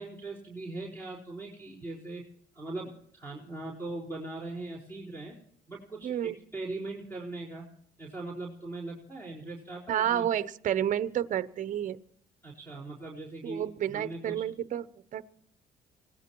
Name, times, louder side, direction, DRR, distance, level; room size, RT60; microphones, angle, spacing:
voice 1, 0.0-2.2 2.5-5.4 5.7-7.7 8.0-10.3 12.4-14.5, right 2 dB, 10° left, -4 dB, 4.5 m, -40 dB
voice 2, 6.0-6.4 9.9-12.0 13.4-14.9 15.1-15.2, right 10 dB, 50° right, 14 dB, 0.8 m, -30 dB
26.0 x 18.0 x 3.0 m, 0.64 s
cardioid pair, 110°, 17 cm